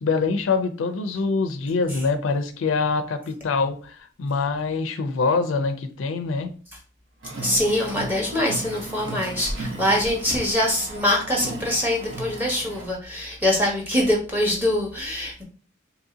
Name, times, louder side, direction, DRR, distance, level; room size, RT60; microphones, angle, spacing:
voice 1, 0.0-6.5, left 4 dB, 80° left, 8 dB, 0.4 m, -24 dB
Car, 7.2-12.9, right 2 dB, 70° right, 1.0 m, -36 dB
voice 2, 7.4-15.4, left 1 dB, 10° right, -1 dB, 0.9 m, -23 dB
2.8 x 2.7 x 3.8 m, 0.40 s
head